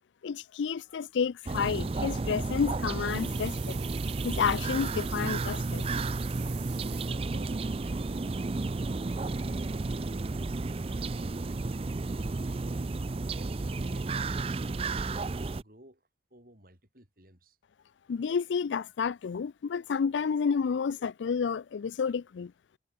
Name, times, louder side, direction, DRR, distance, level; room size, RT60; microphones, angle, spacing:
voice 1, 0.2-3.8 4.2-5.9 18.1-22.5, left 6 dB, 85° left, 0.4 m, -30 dB
sound 1, 1.5-15.6, right 3 dB, 30° right, 0.4 m, -32 dB
sound 2, 3.1-7.1, right 16 dB, 80° right, 5.8 m, -46 dB
voice 2, 6.8-8.8 9.4-10.4 10.8-12.0 12.2-12.9 13.3-17.6, right 1 dB, 50° right, 7.1 m, -54 dB
head